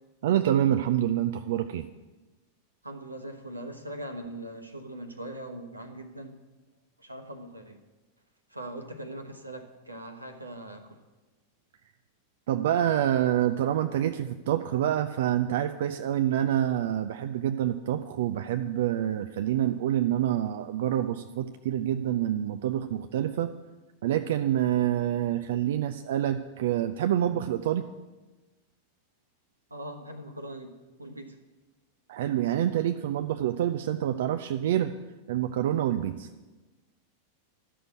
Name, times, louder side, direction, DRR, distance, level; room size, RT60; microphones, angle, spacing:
voice 1, 0.2-1.8 12.5-23.5 24.0-27.8 32.1-34.9 35.3-36.3, right 11 dB, 55° right, 8 dB, 0.5 m, -27 dB
voice 2, 2.8-6.4 7.0-7.8 8.5-11.0 29.7-31.4, right 1 dB, 85° right, 6 dB, 1.1 m, -41 dB
12.5 x 6.6 x 7.9 m, 1.2 s
figure-of-eight pair, 90°, 0 cm